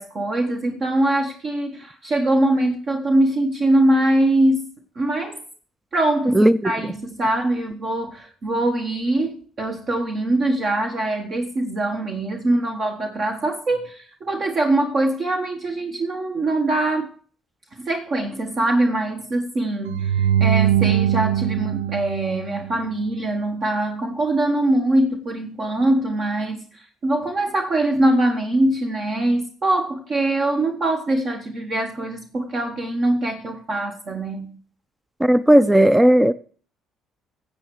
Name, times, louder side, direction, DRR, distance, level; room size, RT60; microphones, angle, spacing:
voice 1, 0.0-4.7 4.9-5.4 5.9-17.1 17.8-34.6, right 1 dB, 45° right, 1.3 m, -22 dB
voice 2, 6.3-6.7 35.2-36.3, right 1 dB, 10° right, 0.5 m, -15 dB
sound 1, 19.9-23.1, right 10 dB, 80° right, 0.4 m, -21 dB
17.0 x 7.8 x 3.2 m
figure-of-eight pair, 50°, 0 cm